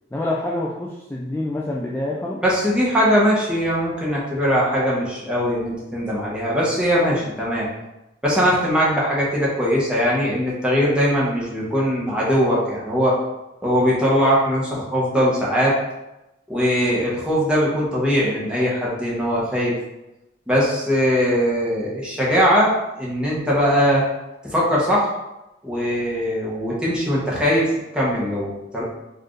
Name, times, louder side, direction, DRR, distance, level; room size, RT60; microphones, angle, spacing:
voice 1, 0.1-2.4, left 1 dB, 10° left, -3 dB, 0.3 m, -26 dB
voice 2, 2.4-7.7 8.2-13.2 13.6-15.8 16.5-19.7 20.5-24.1 24.4-25.1 25.6-28.8, equal, 5° right, -6 dB, 1.0 m, -20 dB
4.5 x 2.5 x 3.1 m, 0.94 s
head